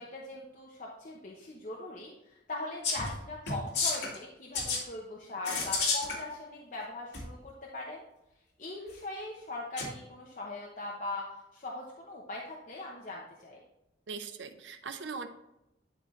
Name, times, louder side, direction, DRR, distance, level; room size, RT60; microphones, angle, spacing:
voice 1, 0.0-8.0 8.6-11.2 11.5-13.6, left 2 dB, 45° left, -3 dB, 1.0 m, -40 dB
sound 1, 2.8-3.1 3.5-4.2 4.5-4.8 5.4-6.2 7.1-7.2 9.8-9.9, left 4 dB, 75° left, 2.1 m, -30 dB
voice 2, 14.1-15.3, right 5 dB, 90° right, 8 dB, 0.7 m, -40 dB
11.5 x 3.9 x 3.3 m, 0.88 s
head